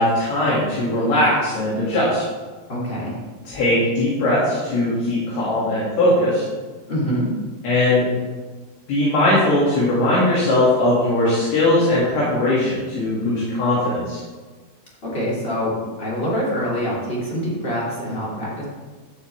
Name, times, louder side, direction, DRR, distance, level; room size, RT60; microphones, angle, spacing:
voice 1, 0.0-2.2 3.5-6.4 7.6-8.0 8.9-14.2, left 1 dB, 65° left, -8 dB, 4.1 m, -19 dB
voice 2, 2.7-3.1 6.9-7.3 15.0-18.6, equal, 20° left, -6 dB, 2.2 m, -25 dB
13.0 x 8.3 x 3.4 m, 1.3 s
omnidirectional pair, 5.1 m